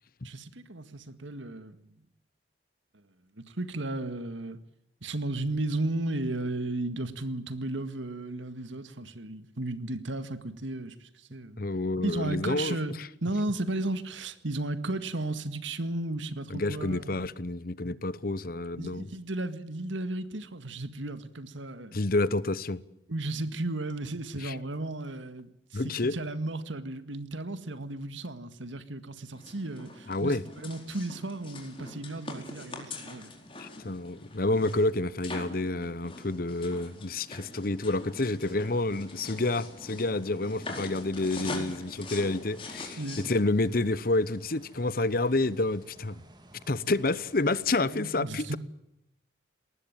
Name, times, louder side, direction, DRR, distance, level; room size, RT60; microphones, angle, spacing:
voice 1, 0.2-1.9 3.4-4.6 5.0-11.6 12.0-12.9 13.2-17.2 18.8-22.0 23.1-25.8 26.1-33.3 41.4-41.7 43.0-43.2 47.9-48.6, right 2 dB, 80° right, 1.9 m, -34 dB
voice 2, 11.6-12.8 16.5-19.1 21.9-22.8 24.4-24.6 25.7-26.1 30.1-30.4 33.6-46.2 46.7-48.6, left 2 dB, 50° left, 0.9 m, -29 dB
sound 1, 29.3-43.4, left 2 dB, 30° left, 4.4 m, -43 dB
sound 2, 38.4-47.8, right 1 dB, 20° right, 2.7 m, -56 dB
21.5 x 19.0 x 9.1 m
head